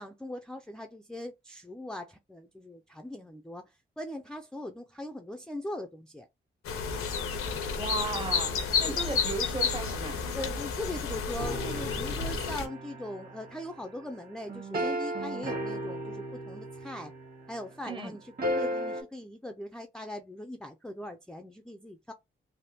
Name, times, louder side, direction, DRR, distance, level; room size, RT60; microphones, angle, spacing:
voice 1, 0.0-6.3 8.8-9.0 10.3-17.1 17.5-22.1, left 1 dB, 5° left, 0.3 m, -40 dB
sound 1, 6.6-12.7, left 5 dB, 85° left, 0.7 m, -31 dB
voice 2, 7.8-10.2 17.8-18.2, right 3 dB, 25° right, 0.7 m, -36 dB
sound 2, 11.4-17.6 18.4-19.0, equal, 45° right, 1.4 m, -35 dB
3.3 x 2.1 x 2.8 m
cardioid pair, 80°, 21 cm